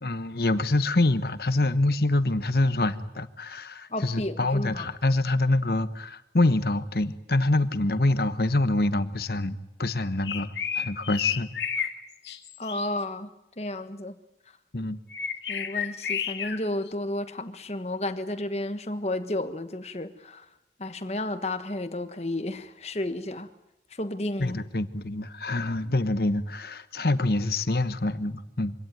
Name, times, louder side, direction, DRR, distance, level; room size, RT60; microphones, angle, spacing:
voice 1, 0.0-11.5 14.7-15.0 24.4-28.7, left 2 dB, 60° left, 12 dB, 1.1 m, -26 dB
voice 2, 3.9-4.9 12.6-13.3 13.6-14.2 15.5-20.5 20.8-23.5 23.9-24.7, left 1 dB, 35° left, 10 dB, 1.3 m, -32 dB
sound 1, 10.2-11.9 12.2-12.9 15.1-16.6, left 7 dB, 80° left, 2.0 m, -31 dB
25.0 x 17.5 x 9.3 m, 0.94 s
head